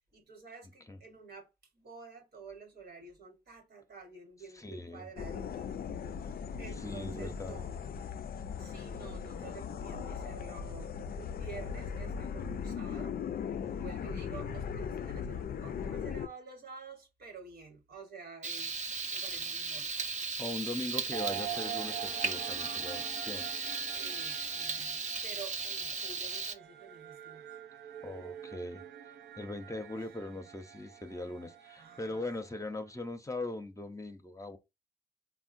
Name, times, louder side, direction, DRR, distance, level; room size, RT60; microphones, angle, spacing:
voice 1, 0.1-1.5 1.7-5.8 6.2-7.8 8.6-13.2 13.7-18.7 19.1-19.9 23.4-27.5 30.2-30.4 31.8-32.2, right 4 dB, 70° right, 1.2 m, -50 dB
voice 2, 4.5-5.1 6.8-7.6 20.4-23.5 28.0-34.6, left 2 dB, 20° left, 0.6 m, -40 dB
sound 1, 5.2-16.3, left 7 dB, 60° left, 0.4 m, -38 dB
Frying (food), 18.4-26.5, right 4 dB, 45° right, 0.6 m, -36 dB
sound 2, 21.1-32.5, right 11 dB, 90° right, 0.6 m, -45 dB
3.6 x 2.1 x 2.5 m
cardioid pair, 50°, 17 cm